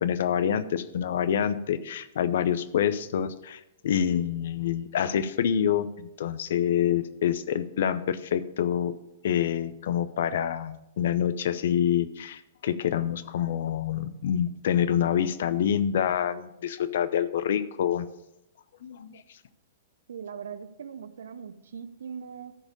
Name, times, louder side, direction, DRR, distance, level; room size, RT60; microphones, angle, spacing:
voice 1, 0.0-8.9 9.2-18.0 18.8-19.1, left 9 dB, 60° left, 13 dB, 0.6 m, -27 dB
voice 2, 20.1-22.6, right 7 dB, 65° right, 13 dB, 0.6 m, -40 dB
13.5 x 5.0 x 5.3 m, 0.85 s
figure-of-eight pair, 105°, 0 cm